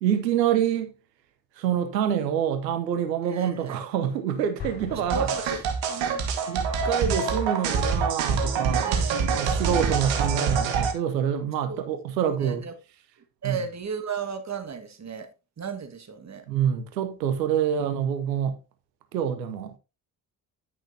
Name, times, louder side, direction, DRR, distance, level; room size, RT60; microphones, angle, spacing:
voice 1, 0.0-0.9 1.6-5.3 6.5-8.9 9.3-12.6 13.4-13.6 16.5-18.6 19.1-19.7, right 9 dB, 90° right, 0.8 m, -26 dB
voice 2, 3.3-3.8 5.1-5.6 5.9-6.3 8.8-9.2 11.7-11.8 12.4-12.7 13.4-15.3 15.6-16.4, right 6 dB, 35° right, 1.6 m, -34 dB
Explosion, 4.6-6.3, left 6 dB, 55° left, 4.5 m, -41 dB
sound 1, 5.1-10.9, right 5 dB, 70° right, 1.7 m, -25 dB
10.5 x 6.3 x 2.7 m
hypercardioid pair, 50°, 49 cm